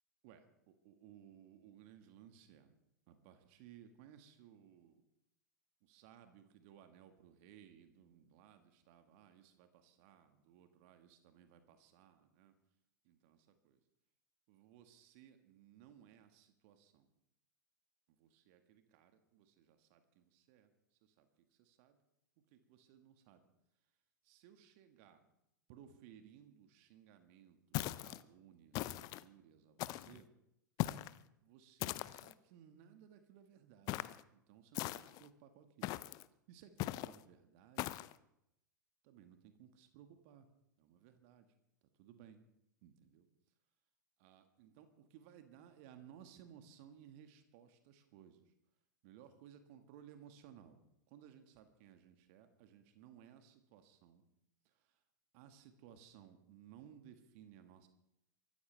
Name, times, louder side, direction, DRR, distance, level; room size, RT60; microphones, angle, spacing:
voice 1, 0.2-2.8 3.1-5.0 5.8-12.5 13.0-13.8 14.5-17.1 18.1-20.7 21.0-22.0 22.5-23.5 24.2-25.2 25.7-30.3 31.4-36.0 36.5-37.9 39.0-40.5 40.8-41.5 42.0-42.4 42.8-43.3 44.2-48.5 49.0-50.8 51.1-54.2 54.6-55.0 55.3-57.9, right 9 dB, 45° right, 8 dB, 1.7 m, -61 dB
sound 1, 27.7-28.2 28.7-29.2 29.8-30.2 30.8-31.2 31.8-32.3 33.9-34.2 34.7-35.3 35.8-36.2 36.8-37.2 37.8-38.1, left 17 dB, 40° left, 0.6 m, -40 dB
23.5 x 13.5 x 3.4 m, 0.79 s
figure-of-eight pair, 95°, 10 cm